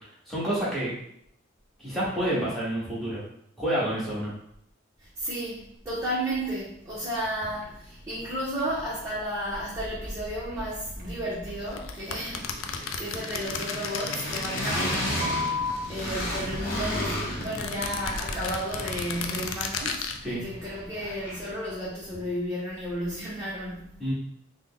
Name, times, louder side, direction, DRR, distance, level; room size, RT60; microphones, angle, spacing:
voice 1, 0.3-0.9 1.8-3.2 3.6-4.3 20.2-20.4 24.0-24.1, right 1 dB, ahead, -9 dB, 1.1 m, -28 dB
voice 2, 5.0-5.6 5.8-15.5 15.9-24.0, equal, 15° right, -9 dB, 0.7 m, -33 dB
sound 1, 7.6-7.8 8.1-8.2 8.6-8.7 9.1-9.2 9.5-9.7 10.0-10.2 10.5-10.7 11.0-11.1 11.5-11.6 12.3-14.2 15.2-15.7 16.7-17.4, left 4 dB, 40° right, 0.4 m, -36 dB
sound 2, 7.7-7.8 8.0-9.2 9.4-21.7, equal, 40° left, 0.8 m, -35 dB
sound 3, 11.7-15.5 15.8-16.9 17.4-20.2, left 6 dB, 70° left, 0.3 m, -34 dB
3.4 x 2.1 x 3.6 m, 0.71 s
head